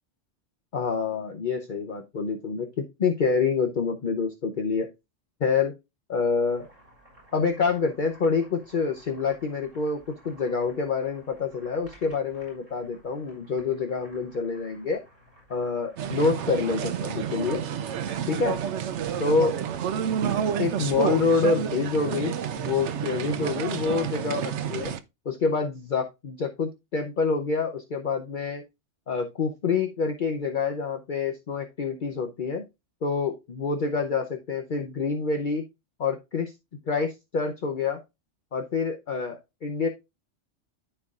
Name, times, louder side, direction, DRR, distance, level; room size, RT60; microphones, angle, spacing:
voice 1, 0.7-4.9 5.4-5.7 6.1-6.7 7.3-15.0 15.5-17.6 18.3-18.6 19.2-19.5 20.0-20.1 20.6-24.9 25.2-28.6 29.1-32.6 33.0-35.6 36.0-36.5 36.9-38.0 38.5-39.9, left 4 dB, 45° left, 4 dB, 0.9 m, -27 dB
Boiling, 6.3-20.4, equal, 30° right, 5.5 m, -56 dB
sound 1, 16.0-25.0, right 8 dB, 70° right, 1.0 m, -30 dB
13.0 x 4.6 x 2.4 m, 0.23 s
omnidirectional pair, 1.2 m